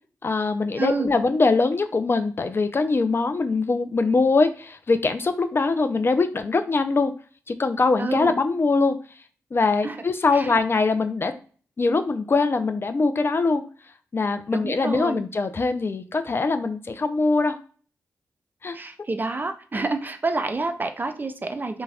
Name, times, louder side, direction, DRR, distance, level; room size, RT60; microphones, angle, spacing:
voice 1, 0.2-7.1 7.5-9.0 9.5-11.3 11.8-13.6 14.1-17.6 18.6-18.8, left 3 dB, 40° left, 9 dB, 0.3 m, -22 dB
voice 2, 0.8-1.1 8.0-8.3 9.8-10.0 10.3-10.6 14.5-15.2 18.7-21.8, right 3 dB, 30° right, 8 dB, 0.4 m, -28 dB
2.3 x 2.1 x 3.3 m, 0.41 s
supercardioid pair, 40°, 6 cm